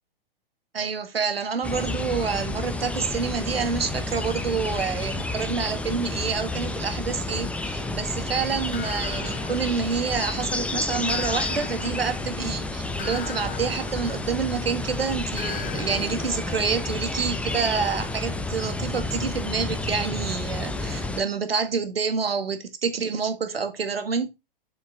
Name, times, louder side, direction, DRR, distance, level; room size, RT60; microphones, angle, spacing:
voice 1, 0.7-24.3, right 5 dB, 85° right, 1.9 m, -28 dB
sound 1, 1.6-21.2, left 2 dB, 5° left, 0.8 m, -30 dB
sound 2, 8.7-10.4 11.1-14.8 15.4-19.1, left 11 dB, 30° left, 1.3 m, -41 dB
7.3 x 6.4 x 3.5 m
hypercardioid pair, 115°, 29 cm